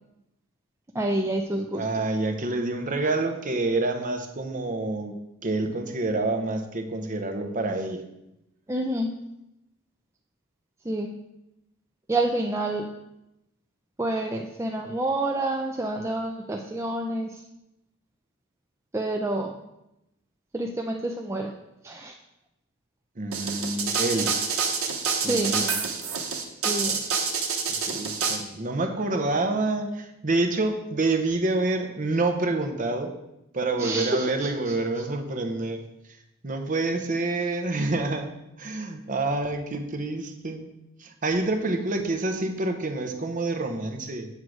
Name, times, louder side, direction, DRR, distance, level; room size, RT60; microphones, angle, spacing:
voice 1, 0.9-1.8 8.7-9.1 10.9-11.1 12.1-12.9 14.0-17.3 18.9-19.5 20.5-21.5 21.8-22.1 25.2-25.5 26.6-27.0 33.8-34.3, right 1 dB, 15° right, 1 dB, 0.4 m, -28 dB
voice 2, 1.7-5.1 5.4-8.0 23.2-24.4 25.2-25.8 26.7-26.8 27.7-33.1 33.5-38.3 38.6-40.7 41.0-44.3, right 2 dB, 35° right, 5 dB, 0.7 m, -27 dB
sound 1, 23.3-28.4, right 5 dB, 80° right, 1.0 m, -27 dB
7.7 x 3.7 x 6.1 m, 0.88 s
head